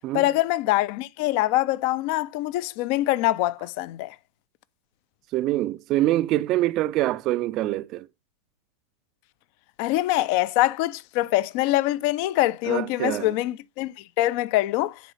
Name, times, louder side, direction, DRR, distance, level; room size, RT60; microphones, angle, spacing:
voice 1, 0.1-4.2 9.8-15.0, left 16 dB, 50° left, 0.3 m, -24 dB
voice 2, 5.3-8.1 12.7-13.3, right 15 dB, 40° right, 0.3 m, -25 dB
9.9 x 4.1 x 2.5 m
figure-of-eight pair, 95°, 0 cm